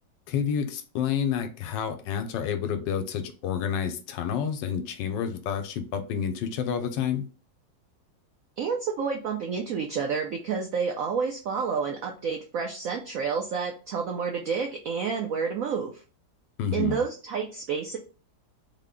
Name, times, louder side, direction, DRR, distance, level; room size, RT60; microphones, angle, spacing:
voice 1, 0.3-7.3 16.6-17.0, left 8 dB, 80° left, 7 dB, 1.2 m, -29 dB
voice 2, 8.6-16.0 16.7-18.0, right 6 dB, 80° right, 2 dB, 0.7 m, -29 dB
3.5 x 2.1 x 3.5 m, 0.35 s
omnidirectional pair, 2.0 m